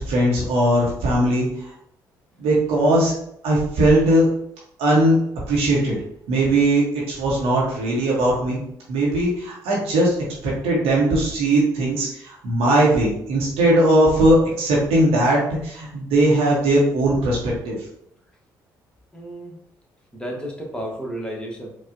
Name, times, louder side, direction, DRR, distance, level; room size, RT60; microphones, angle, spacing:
voice 1, 0.1-1.7 2.4-3.1 3.4-4.3 4.8-5.2 5.5-6.0 6.3-8.6 8.9-10.1 10.4-17.8, right 1 dB, 70° right, -4 dB, 0.9 m, -19 dB
voice 2, 19.1-19.6 20.1-21.7, equal, 10° left, -1 dB, 1.2 m, -32 dB
4.6 x 2.3 x 2.6 m, 0.73 s
hypercardioid pair, 45°, 10 cm